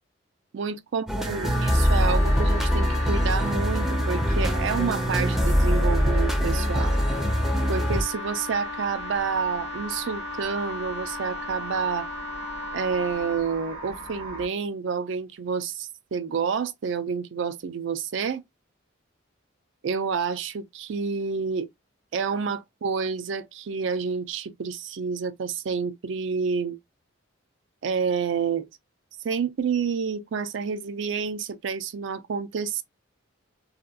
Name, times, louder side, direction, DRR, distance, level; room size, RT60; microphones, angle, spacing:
voice 1, 0.5-7.0 7.7-12.1 12.7-18.4 19.8-21.7 22.1-26.8 27.8-28.7 29.2-32.8, right 5 dB, 70° right, 0.4 m, -29 dB
sound 1, 1.1-8.0, equal, ahead, 0.4 m, -23 dB
sound 2, 1.2-14.5, right 3 dB, 90° right, 0.9 m, -40 dB
Wind instrument woodwind instrument, 1.4-13.5, left 4 dB, 55° left, 0.5 m, -36 dB
2.8 x 2.2 x 2.3 m
head